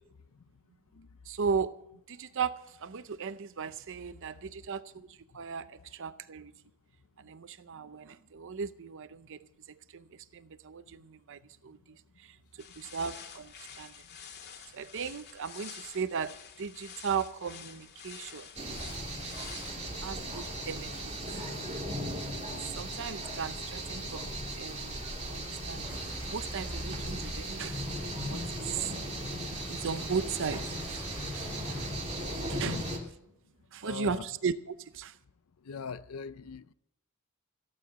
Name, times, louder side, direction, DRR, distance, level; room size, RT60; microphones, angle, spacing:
voice 1, 1.3-1.8 2.1-6.5 7.2-10.1 10.3-12.4 12.8-13.9 14.7-18.5 20.0-21.0 22.3-27.8 28.3-28.9 29.7-31.1 31.3-31.5 32.5-32.8 33.7-35.2, right 6 dB, 65° right, 0.6 m, -37 dB
sound 1, 12.6-19.7, left 7 dB, 50° left, 2.0 m, -48 dB
sound 2, 18.6-33.0, right 1 dB, 30° right, 2.7 m, -37 dB
sound 3, 25.9-31.9, equal, 10° right, 1.7 m, -50 dB
voice 2, 33.8-34.3 35.6-36.7, left 5 dB, 80° left, 0.5 m, -41 dB
16.5 x 8.7 x 7.3 m
head